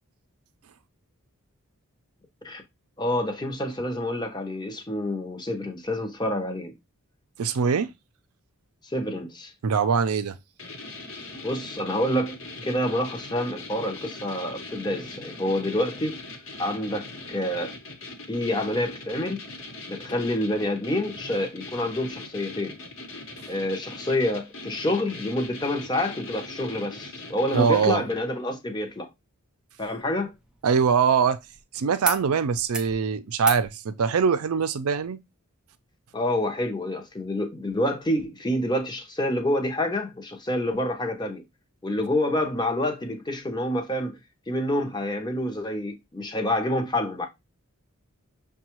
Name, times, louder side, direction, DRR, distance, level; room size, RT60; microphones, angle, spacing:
voice 1, 3.0-6.7 8.8-9.5 11.4-12.4 12.6-16.2 16.6-17.8 18.3-19.4 19.9-22.8 23.5-29.1 29.8-30.3 36.1-41.4 41.8-44.2 44.5-47.3, left 1 dB, 20° left, 0.7 m, -27 dB
voice 2, 7.4-7.9 9.6-10.4 27.5-28.0 30.6-31.4 31.7-35.2, right 6 dB, 80° right, 0.5 m, -23 dB
sound 1, 10.6-28.3, left 3 dB, 60° left, 1.0 m, -41 dB
sound 2, 29.8-31.6 32.0-32.2 32.5-32.9 33.4-33.7 35.0-35.1, right 2 dB, 5° right, 0.3 m, -34 dB
6.4 x 2.3 x 3.0 m
head